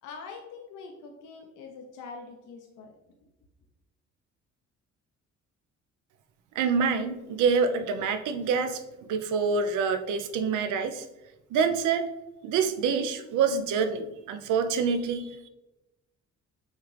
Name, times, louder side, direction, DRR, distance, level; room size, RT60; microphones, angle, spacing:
voice 1, 0.0-2.9, left 4 dB, 80° left, 2 dB, 0.6 m, -44 dB
voice 2, 6.6-8.8 9.1-11.1 11.5-12.0 12.4-15.5, right 5 dB, 80° right, 9 dB, 0.6 m, -26 dB
6.4 x 2.5 x 3.1 m, 0.97 s
cardioid pair, 90°, 30 cm